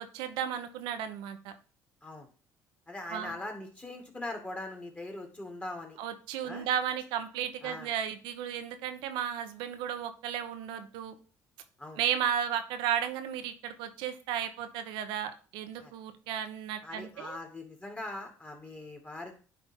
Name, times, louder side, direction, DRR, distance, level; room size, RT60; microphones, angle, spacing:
voice 1, 0.0-1.5 3.1-3.4 6.0-11.2 12.0-17.4, right 9 dB, 80° right, 9 dB, 0.8 m, -34 dB
voice 2, 2.9-6.0 6.4-6.7 7.6-7.9 11.8-12.0 15.8-15.9 16.8-19.4, left 2 dB, 15° left, 3 dB, 2.0 m, -41 dB
10.0 x 3.5 x 3.6 m, 0.38 s
supercardioid pair, 85°, 8 cm